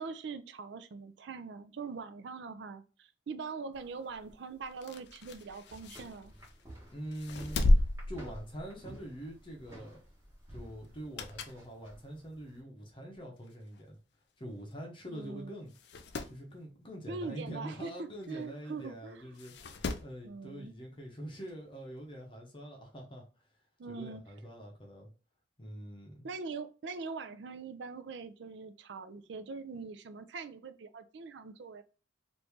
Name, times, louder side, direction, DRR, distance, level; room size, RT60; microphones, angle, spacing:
voice 1, 0.0-6.3 15.1-15.6 17.1-19.3 20.2-20.7 23.8-24.2 26.2-31.8, right 4 dB, 65° right, 0.4 m, -42 dB
sound 1, 3.7-12.6, right 1 dB, 15° right, 1.3 m, -53 dB
sound 2, 4.7-6.6 7.1-9.0 9.4-9.6 10.9-11.7 12.1-12.2 13.1-13.2 13.5-13.6 13.7-13.8 14.7-14.9 15.2-15.3 15.7-16.4 18.2-18.3 19.4-20.2 21.5-21.6, left 1 dB, 60° left, 0.4 m, -32 dB
voice 2, 6.9-10.0 10.5-14.0 14.4-15.7 16.2-23.2 23.9-25.1 25.6-26.3, equal, 25° left, 0.7 m, -45 dB
3.0 x 2.6 x 3.5 m
head